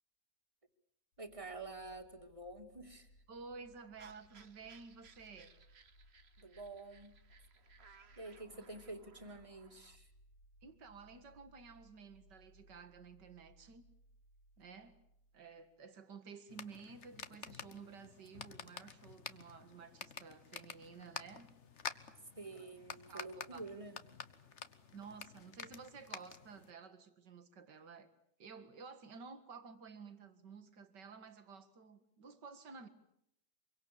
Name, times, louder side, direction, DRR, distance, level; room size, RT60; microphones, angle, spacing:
sound 1, 1.1-15.9, equal, 65° left, 2.3 m, -66 dB
voice 1, 1.2-3.1 6.4-7.1 8.2-10.1 22.4-24.0, right 2 dB, 20° right, 2.7 m, -48 dB
voice 2, 3.3-5.5 8.5-8.7 10.6-13.9 14.6-15.0 15.3-21.5 21.8-21.9 22.5-22.7 23.1-23.6 24.9-28.1 28.4-32.9, right 5 dB, 75° right, 2.6 m, -53 dB
sound 2, 4.0-10.0, right 5 dB, 40° right, 1.5 m, -64 dB
sound 3, 16.5-26.7, left 6 dB, 45° left, 1.4 m, -50 dB
25.5 x 24.0 x 8.5 m
omnidirectional pair, 1.9 m